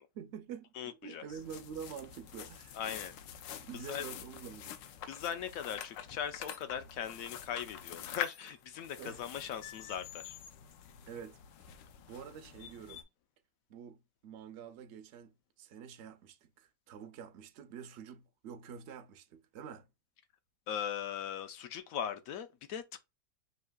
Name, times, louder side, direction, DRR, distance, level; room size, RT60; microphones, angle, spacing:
voice 1, 0.1-2.8 3.6-4.8 9.0-9.2 11.1-11.4 12.1-13.1 13.7-19.9, right 7 dB, 70° right, 0.6 m, -47 dB
voice 2, 0.8-1.2 2.7-3.1 3.9-4.0 5.1-10.4 20.7-23.0, left 9 dB, 70° left, 0.8 m, -39 dB
sound 1, 1.3-13.0, left 9 dB, 85° left, 1.3 m, -46 dB
6.4 x 2.8 x 2.2 m
omnidirectional pair, 1.9 m